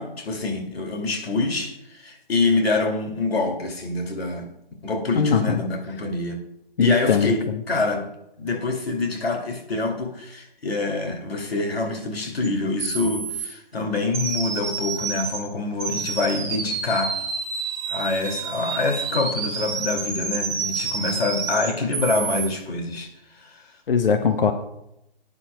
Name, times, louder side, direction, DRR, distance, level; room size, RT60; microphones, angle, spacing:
voice 1, 0.0-4.5 4.8-6.4 6.8-8.1 8.4-17.1 17.9-23.1 23.4-23.7, left 3 dB, 80° left, 3 dB, 2.5 m, -26 dB
voice 2, 5.2-5.6 6.8-7.3 23.9-24.5, left 6 dB, 65° left, 7 dB, 0.9 m, -20 dB
sound 1, 12.4-12.5 12.8-13.5 14.1-15.4 15.8-22.5, right 5 dB, 20° right, 3.2 m, -29 dB
21.5 x 9.8 x 2.2 m, 0.83 s
hypercardioid pair, 155°, 30 cm